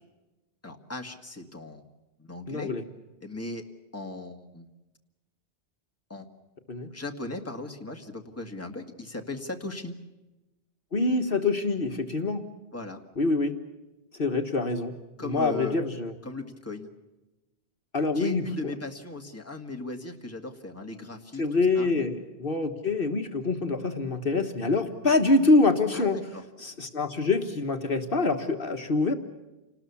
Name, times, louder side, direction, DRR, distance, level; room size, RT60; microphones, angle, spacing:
voice 1, 0.6-1.8 2.2-2.7 3.2-3.6 3.9-4.7 6.1-6.3 6.9-9.9 12.7-13.0 15.2-15.8 16.2-16.9 18.1-21.4 21.8-21.9 25.9-26.4, left 2 dB, 15° left, 3 dB, 2.0 m, -37 dB
voice 2, 2.5-2.8 6.7-6.9 10.9-12.4 13.2-13.5 14.2-14.9 15.2-16.1 17.9-18.4 21.4-26.2 26.6-29.1, left 3 dB, 60° left, 5 dB, 1.7 m, -25 dB
28.5 x 19.5 x 7.1 m, 1.1 s
omnidirectional pair, 1.1 m